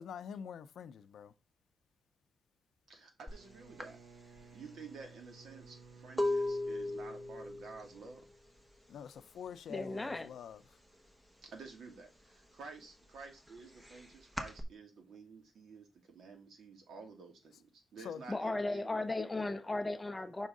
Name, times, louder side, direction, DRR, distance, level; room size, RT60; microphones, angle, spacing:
voice 1, 0.0-1.3 8.9-10.6 18.0-18.2, left 8 dB, 75° left, 0.5 m, -45 dB
voice 2, 2.9-4.0 4.5-8.2 11.4-19.0, right 4 dB, 65° right, 1.8 m, -51 dB
Bowed string instrument, 3.2-8.6, right 4 dB, 80° right, 0.7 m, -57 dB
sound 1, 3.3-3.4 3.8-9.5 9.7-10.2 10.5-11.7 12.1-14.6, left 2 dB, 10° right, 0.9 m, -38 dB
voice 3, 9.7-10.3 18.3-20.5, left 2 dB, 15° left, 0.6 m, -36 dB
5.5 x 3.6 x 5.2 m
wide cardioid pair, 160°, 0 cm